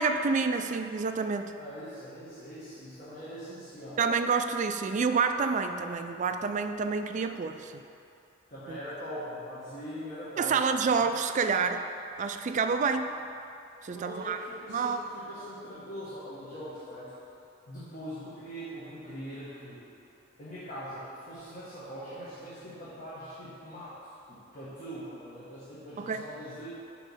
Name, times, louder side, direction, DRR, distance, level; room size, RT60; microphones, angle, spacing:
voice 1, 0.0-1.5 4.0-7.8 8.7-8.8 10.4-11.9 12.2-13.1 13.8-14.4 14.7-15.0 26.0-26.2, right 5 dB, 40° right, 8 dB, 0.3 m, -28 dB
voice 2, 1.6-4.0 8.5-10.5 13.9-17.1 17.7-19.8 20.4-24.1 24.5-26.7, equal, 40° left, -11 dB, 1.5 m, -42 dB
8.8 x 3.1 x 5.5 m, 2.7 s
head